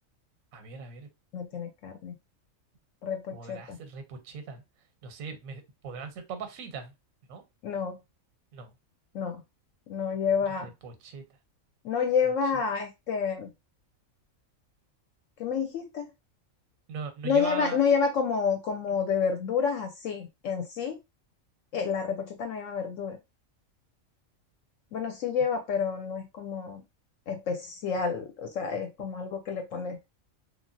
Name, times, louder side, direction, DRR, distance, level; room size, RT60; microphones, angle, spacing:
voice 1, 0.5-1.1 3.3-4.6 5.0-6.9 7.3-7.4 8.5-8.7 10.6-11.2 16.9-17.8, right 5 dB, 90° right, 7 dB, 1.1 m, -40 dB
voice 2, 1.3-2.1 3.0-3.8 7.6-8.0 9.1-9.4 9.9-10.7 11.8-13.5 15.4-16.1 17.2-21.0 21.7-23.2 24.9-26.8 27.3-30.0, left 6 dB, 75° left, 4 dB, 0.9 m, -29 dB
3.1 x 2.4 x 2.5 m, 0.23 s
omnidirectional pair, 1.4 m